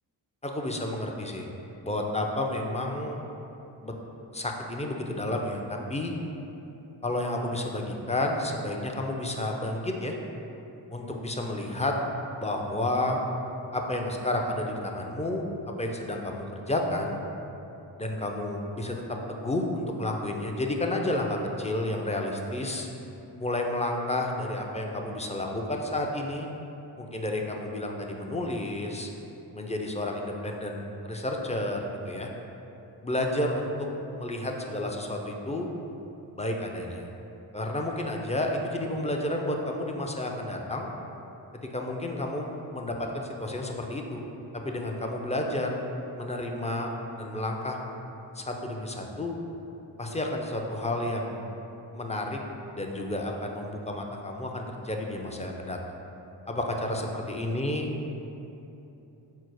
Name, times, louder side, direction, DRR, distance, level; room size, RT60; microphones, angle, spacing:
voice 1, 0.4-1.4 1.8-3.3 3.8-3.9 4.3-6.1 7.0-10.2 10.9-11.9 12.4-13.2 13.7-15.5 15.8-17.2 18.0-19.0 19.3-22.9 23.4-26.5 27.0-29.1 29.6-32.3 33.0-33.7 34.2-35.7 36.4-37.1 37.5-40.9 41.7-44.3 44.5-45.7 46.2-47.8 48.3-49.4 50.0-51.5 51.9-52.4 52.7-55.8 56.5-57.9, left 1 dB, 15° left, 1 dB, 0.4 m, -31 dB
4.7 x 2.0 x 4.6 m, 2.9 s
supercardioid pair, 40°, 49 cm